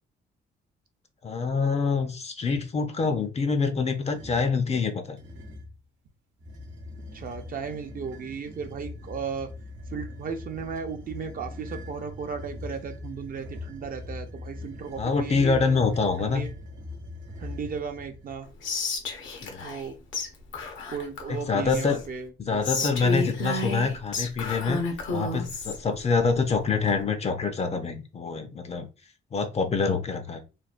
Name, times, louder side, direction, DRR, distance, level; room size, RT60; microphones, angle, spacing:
voice 1, 1.2-5.2 15.0-16.4 19.4-19.7 21.3-22.0 22.4-24.8 25.1-28.9 29.3-30.4, left 4 dB, 35° left, 7 dB, 0.4 m, -26 dB
sound 1, 4.0-4.6 5.2-5.8 6.4-18.4, left 2 dB, 75° right, 0.9 m, -41 dB
voice 2, 7.1-9.5 9.9-15.9 16.2-16.5 17.4-18.5 19.6-19.9 20.9-23.1, right 6 dB, 45° right, 6 dB, 0.6 m, -36 dB
Whispering, 18.6-19.9 20.1-20.3 20.5-22.1 22.6-25.8, left 3 dB, 80° left, 0.7 m, -31 dB
3.1 x 2.1 x 2.4 m, 0.31 s
cardioid pair, 90°, 20 cm